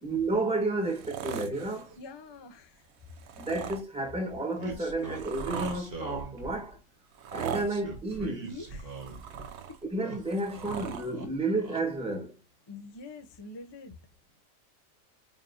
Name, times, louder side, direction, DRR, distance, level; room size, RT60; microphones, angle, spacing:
voice 1, 0.0-2.0 3.4-6.8 7.3-8.5 9.9-12.4, right 2 dB, 5° right, 1.2 m, -31 dB
sound 1, 0.8-1.9 3.1-3.8 4.6-5.8 7.1-7.7 8.7-9.8 10.2-11.1 12.1-12.2, right 8 dB, 60° right, 0.8 m, -39 dB
voice 2, 1.9-3.1 8.4-9.1 9.7-9.8 12.7-14.0, left 3 dB, 30° left, 0.5 m, -46 dB
sound 2, 4.6-6.7 7.5-9.5 9.8-10.8 11.0-11.8, right 3 dB, 30° right, 1.1 m, -41 dB
5.0 x 2.8 x 2.5 m
omnidirectional pair, 1.5 m